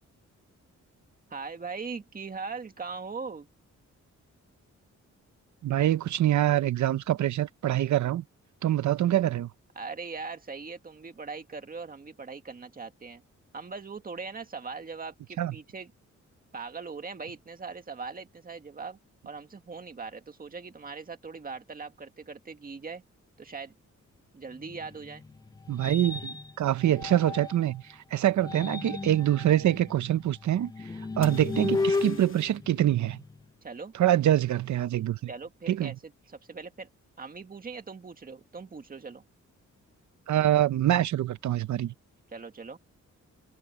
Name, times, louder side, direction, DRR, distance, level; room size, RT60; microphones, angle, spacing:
voice 1, 1.3-3.5 9.8-13.2 13.5-15.9 16.5-19.0 19.3-23.0 23.4-23.7 24.3-25.2 33.6-33.9 35.3-36.1 36.5-36.9 37.2-39.2 42.3-42.8, right 4 dB, 30° right, 1.8 m, -40 dB
voice 2, 5.6-8.2 8.6-9.5 15.4-15.5 25.7-30.9 31.2-33.2 33.9-35.2 35.7-35.9 40.3-41.9, right 12 dB, 80° right, 0.7 m, -25 dB
sound 1, 24.6-27.7 28.3-33.4, left 3 dB, 15° left, 0.3 m, -35 dB
sound 2, 31.2-32.7 36.4-36.8, left 6 dB, 45° left, 2.2 m, -48 dB
wide cardioid pair, 170°, 29 cm